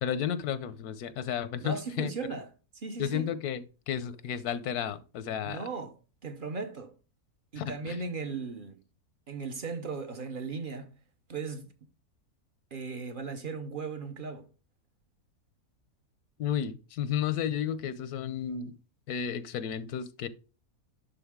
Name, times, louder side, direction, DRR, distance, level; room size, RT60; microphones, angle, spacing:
voice 1, 0.0-2.1 3.0-5.6 7.6-8.0 16.4-18.8 19.1-20.3, left 9 dB, 85° left, 1.2 m, -32 dB
voice 2, 1.6-2.5 2.7-3.3 5.4-6.9 7.5-8.8 9.3-10.9 11.3-11.7 12.7-14.5, right 4 dB, 45° right, 0.8 m, -37 dB
11.0 x 3.7 x 3.6 m
omnidirectional pair, 1.6 m